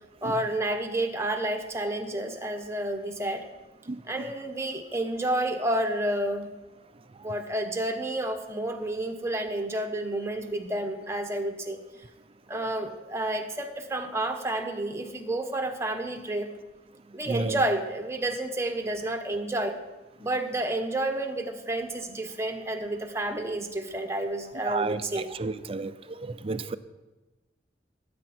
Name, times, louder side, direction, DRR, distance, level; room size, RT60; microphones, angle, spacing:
voice 1, 0.2-3.5 4.0-6.5 7.2-11.8 12.5-16.5 17.1-19.8 20.2-25.3, right 1 dB, 15° right, 4 dB, 1.2 m, -30 dB
voice 2, 17.3-17.6 24.6-25.9 26.2-26.8, right 3 dB, 30° right, 12 dB, 0.6 m, -31 dB
19.0 x 9.3 x 4.4 m, 1.1 s
head